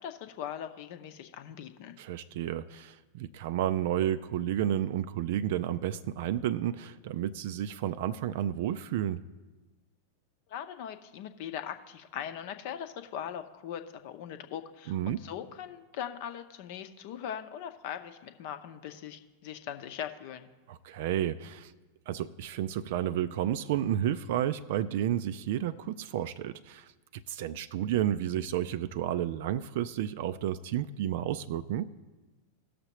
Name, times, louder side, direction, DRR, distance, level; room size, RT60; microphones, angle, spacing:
voice 1, 0.0-1.9 10.5-20.5, left 9 dB, 50° left, 8 dB, 0.7 m, -40 dB
voice 2, 2.0-9.2 14.9-15.2 20.7-21.7 22.1-31.9, right 11 dB, 50° right, 14 dB, 0.4 m, -31 dB
18.0 x 6.6 x 3.0 m, 1.2 s
figure-of-eight pair, 90°, 0 cm